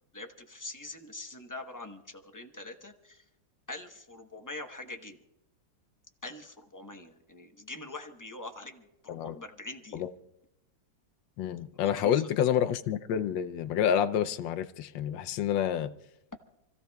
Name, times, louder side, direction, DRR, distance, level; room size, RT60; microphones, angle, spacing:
voice 1, 0.1-3.2 3.7-5.2 6.2-10.0 11.8-12.3, left 2 dB, 20° left, 4 dB, 0.6 m, -44 dB
voice 2, 9.1-9.4 9.9-10.1 11.4-15.9, left 9 dB, 80° left, 10 dB, 1.3 m, -28 dB
28.5 x 15.5 x 2.3 m, 0.89 s
omnidirectional pair, 2.0 m